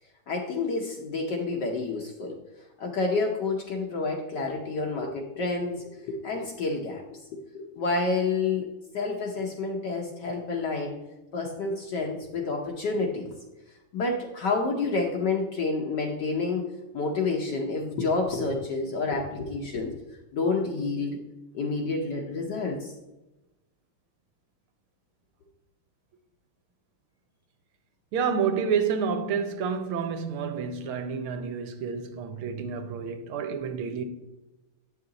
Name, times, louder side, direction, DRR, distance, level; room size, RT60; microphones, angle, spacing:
voice 1, 0.3-2.4 2.8-7.0 7.3-7.4 7.7-8.7 8.9-11.0 11.3-13.3 13.9-16.7 16.9-19.9 20.3-21.2 21.5-22.9, left 3 dB, 60° left, 1.3 m, -29 dB
voice 2, 28.1-34.0, right 6 dB, 80° right, 1.6 m, -29 dB
8.3 x 5.7 x 3.8 m
omnidirectional pair, 2.4 m